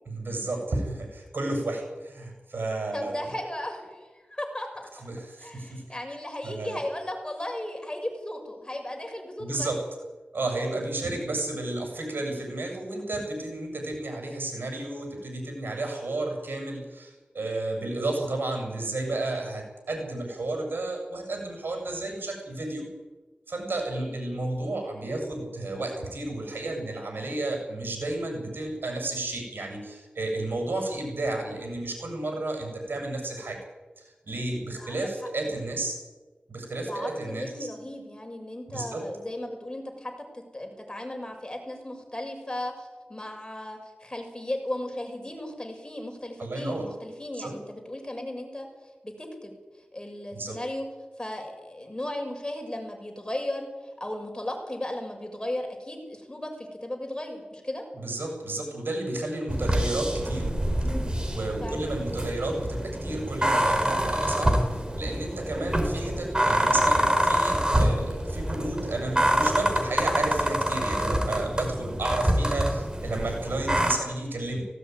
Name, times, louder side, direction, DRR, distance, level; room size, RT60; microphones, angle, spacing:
voice 1, 0.1-3.2 5.0-5.8 6.4-6.8 9.4-9.9 10.3-22.9 23.5-33.6 34.0-36.0 36.5-37.7 38.7-39.0 46.4-46.9 47.4-47.6 50.3-50.6 57.9-60.6 61.3-74.7, right 2 dB, 85° right, 2 dB, 7.7 m, -32 dB
voice 2, 2.9-4.7 5.4-9.7 11.0-11.2 23.9-24.2 34.8-35.0 36.8-48.7 49.0-49.5 49.9-50.8 51.2-57.8 61.6-61.8, left 1 dB, 25° left, 3 dB, 6.7 m, -36 dB
sound 1, 59.5-73.9, right 1 dB, 25° right, 5.1 m, -26 dB
18.0 x 17.5 x 9.6 m, 1.2 s
cardioid pair, 45°, 4 cm